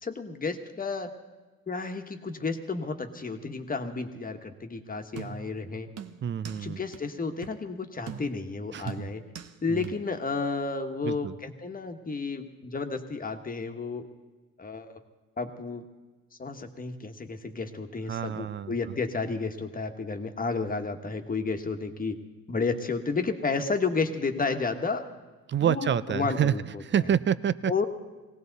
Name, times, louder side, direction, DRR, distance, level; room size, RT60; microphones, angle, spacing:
voice 1, 0.0-1.1 1.7-5.9 6.5-9.2 9.6-14.0 14.6-15.0 15.4-15.8 16.4-22.2 22.5-25.0 25.6-26.8 27.7-27.9, left 4 dB, 30° left, 6 dB, 1.4 m, -32 dB
sound 1, 5.2-5.6 6.0-6.6 6.9-7.0 7.4-7.6 8.1-8.5 8.9-9.5 9.8-9.9, right 7 dB, 55° right, 0.9 m, -42 dB
voice 2, 6.2-6.8 8.7-9.1 9.7-9.9 11.0-11.3 18.1-18.7 25.5-26.5 26.8-27.7, right 9 dB, 40° right, 16 dB, 0.5 m, -27 dB
19.0 x 17.0 x 4.0 m, 1.3 s
cardioid pair, 90°, 30 cm